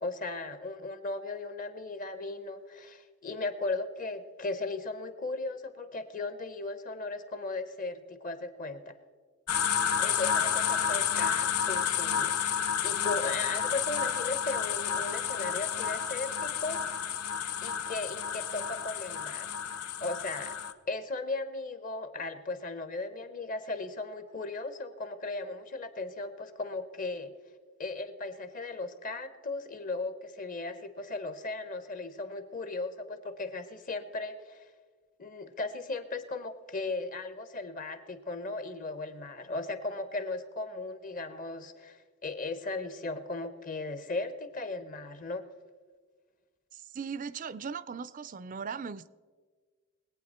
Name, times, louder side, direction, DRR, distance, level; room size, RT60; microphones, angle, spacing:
voice 1, 0.0-9.0 10.0-16.8 17.6-19.6 20.0-20.6 20.9-27.3 27.8-34.7 35.2-45.5, left 3 dB, 35° left, 11 dB, 0.8 m, -37 dB
sound 1, 9.5-20.7, left 8 dB, 85° left, 0.7 m, -30 dB
voice 2, 46.7-49.1, right 6 dB, 35° right, 16 dB, 0.4 m, -38 dB
21.5 x 8.8 x 4.3 m, 1.5 s
head